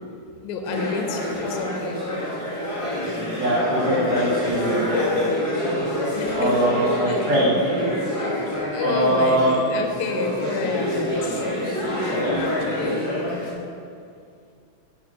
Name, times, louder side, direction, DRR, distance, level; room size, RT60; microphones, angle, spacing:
voice 1, 0.4-2.0 5.6-6.6 7.1-7.3 8.7-13.0, left 5 dB, 80° left, 3 dB, 1.9 m, -31 dB
sound 1, 0.6-13.5, left 1 dB, 55° left, 0.3 m, -26 dB
voice 2, 3.4-4.8 6.3-7.5 8.8-9.6 12.2-12.4, right 1 dB, 65° right, -7 dB, 2.3 m, -22 dB
7.0 x 4.6 x 6.1 m, 2.4 s
omnidirectional pair, 3.4 m